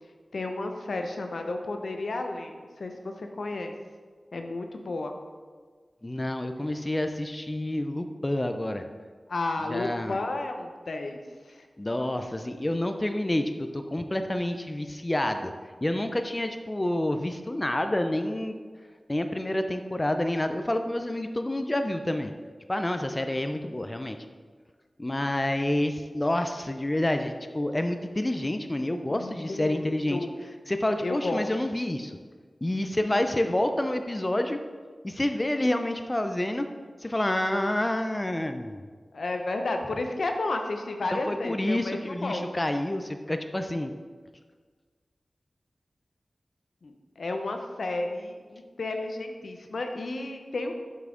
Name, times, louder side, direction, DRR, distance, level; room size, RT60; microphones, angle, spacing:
voice 1, 0.3-3.7 4.3-5.1 9.3-11.2 11.5-11.6 29.1-30.3 31.0-31.5 33.0-33.6 39.1-42.4 46.8-50.7, left 2 dB, 80° left, 4 dB, 0.6 m, -32 dB
voice 2, 6.0-8.8 9.7-10.2 11.8-15.5 15.8-18.5 19.1-22.3 22.7-24.2 25.0-30.2 30.7-32.1 32.6-34.6 35.0-36.7 37.0-38.9 41.1-43.9, left 1 dB, 25° left, 7 dB, 0.4 m, -28 dB
5.9 x 5.6 x 3.7 m, 1.5 s
cardioid pair, 50°, 0 cm